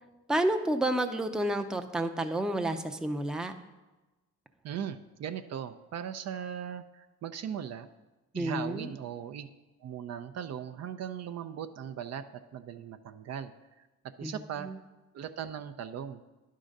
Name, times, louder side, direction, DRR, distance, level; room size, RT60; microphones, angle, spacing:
voice 1, 0.3-3.5 8.3-8.9 14.2-14.8, right 1 dB, ahead, 5 dB, 0.5 m, -30 dB
voice 2, 4.6-7.9 8.3-9.5 9.8-13.5 13.8-13.9 14.2-14.7 15.1-16.2, right 8 dB, 60° right, 10 dB, 0.5 m, -38 dB
10.0 x 3.8 x 6.5 m, 1.1 s
cardioid pair, 90°, 30 cm